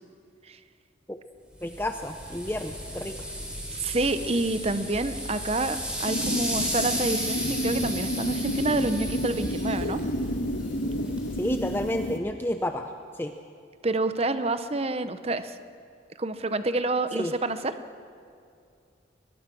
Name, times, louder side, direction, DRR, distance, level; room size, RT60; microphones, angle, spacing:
voice 1, 1.6-3.1 11.4-13.3 17.1-17.3, left 1 dB, 10° left, 6 dB, 0.6 m, -31 dB
sound 1, 1.6-11.9, equal, 5° right, 4.3 m, -34 dB
voice 2, 3.7-10.0 13.8-15.6 16.2-17.7, right 2 dB, 30° right, 11 dB, 0.8 m, -28 dB
sound 2, 6.1-12.2, equal, 75° left, 1.5 m, -30 dB
22.5 x 21.5 x 6.2 m, 2.4 s
head